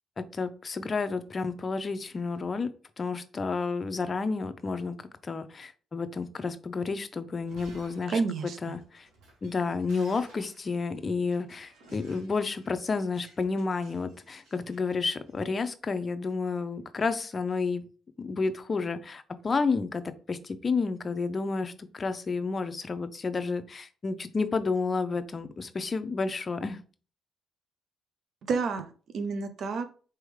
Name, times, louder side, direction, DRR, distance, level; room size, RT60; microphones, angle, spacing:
voice 1, 0.2-2.7 3.0-9.1 9.4-17.8 18.2-26.8, left 4 dB, 35° left, 10 dB, 0.6 m, -31 dB
Shatter, 7.3-15.4, right 1 dB, 90° right, 2.1 m, -56 dB
voice 2, 8.1-8.6 28.5-29.9, right 4 dB, 65° right, 9 dB, 0.5 m, -30 dB
4.2 x 3.4 x 3.2 m, 0.39 s
cardioid pair, 90°, 0 cm